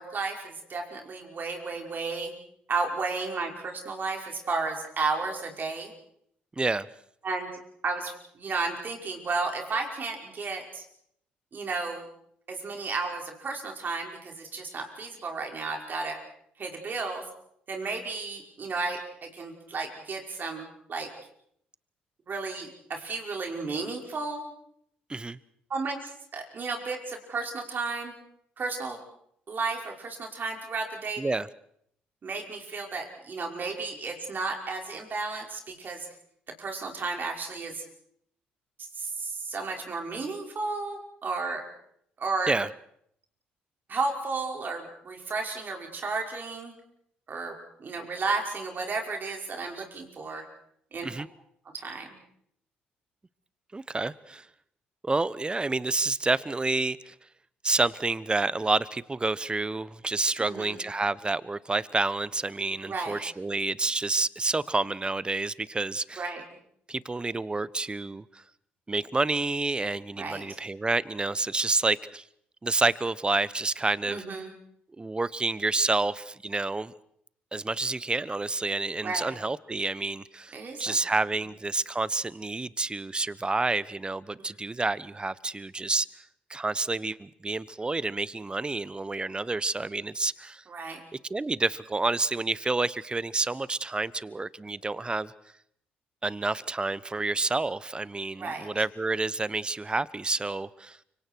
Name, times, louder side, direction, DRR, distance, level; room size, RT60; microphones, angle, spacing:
voice 1, 0.0-2.3 2.7-5.9 7.2-10.8 11.5-12.0 12.5-16.2 16.6-17.2 17.7-21.1 22.3-24.5 25.7-28.1 28.6-29.0 29.5-31.2 32.2-36.1 36.6-37.8 39.0-41.6 42.2-42.5 43.9-46.7 47.3-50.4 50.9-51.1 51.7-52.2 60.4-60.8 62.8-63.2 66.2-66.4 70.2-70.6 74.1-74.5 79.0-79.3 80.5-81.1 90.7-91.0 98.4-98.7, right 3 dB, 45° right, 2 dB, 5.6 m, -33 dB
voice 2, 6.6-6.9 25.1-25.4 31.2-31.5 42.5-42.7 51.0-51.3 53.7-54.5 55.0-57.1 57.6-66.2 66.9-68.4 68.9-72.2 72.6-74.4 75.0-76.9 77.5-86.1 86.5-90.6 91.3-95.3 96.2-101.0, right 3 dB, 20° right, 19 dB, 1.0 m, -29 dB
30.0 x 25.0 x 4.7 m, 0.68 s
hypercardioid pair, 50°, 4 cm